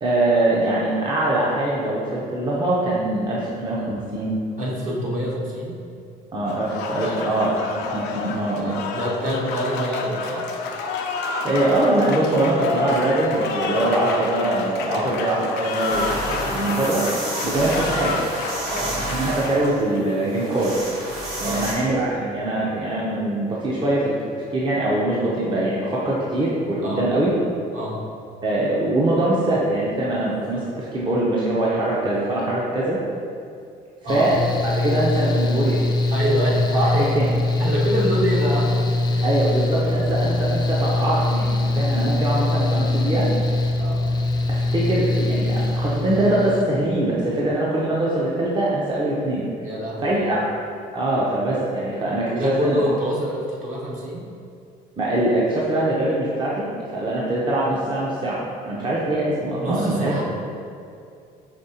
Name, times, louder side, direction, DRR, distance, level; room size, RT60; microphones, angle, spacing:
voice 1, 0.0-4.4 6.3-8.8 11.4-16.2 16.5-17.1 17.4-18.1 19.1-20.7 21.4-27.3 28.4-33.0 34.1-34.4 34.8-35.8 36.7-37.3 39.2-43.3 44.5-49.4 50.0-50.4 50.9-52.8 55.0-56.7 56.9-60.1, right 1 dB, 25° right, -6 dB, 0.6 m, -23 dB
voice 2, 4.6-5.7 7.0-7.3 8.5-10.5 14.8-15.1 17.6-17.8 18.7-19.0 21.4-21.7 26.8-27.1 27.7-28.0 34.0-34.3 36.1-37.3 37.6-39.3 39.8-40.0 43.8-44.0 49.6-50.4 52.3-54.2 59.6-60.3, equal, 50° right, -4 dB, 1.0 m, -26 dB
Applause, 6.5-20.1, left 3 dB, 85° left, 0.4 m, -29 dB
sound 1, 15.2-15.3 15.6-21.7, right 1 dB, 75° right, 1.1 m, -30 dB
Mechanical fan, 34.1-46.6, left 2 dB, 25° left, 0.4 m, -22 dB
5.1 x 3.3 x 2.8 m, 2.4 s
cardioid pair, 110°, 17 cm